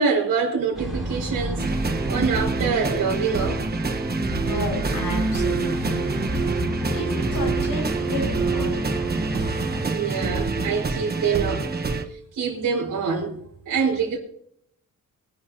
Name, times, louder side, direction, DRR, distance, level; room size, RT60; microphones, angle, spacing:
voice 1, 0.0-3.6 9.9-11.7 12.3-13.3 13.6-14.2, right 5 dB, 60° right, 5.2 m, -25 dB
sound 1, 0.7-9.9, right 1 dB, ahead, 4.8 m, -32 dB
sound 2, 1.6-12.0, right 3 dB, 30° right, 1.2 m, -26 dB
voice 2, 4.2-6.4 6.9-8.9, left 1 dB, 70° left, 5.8 m, -32 dB
22.5 x 10.5 x 2.8 m
wide cardioid pair, 175°, 34 cm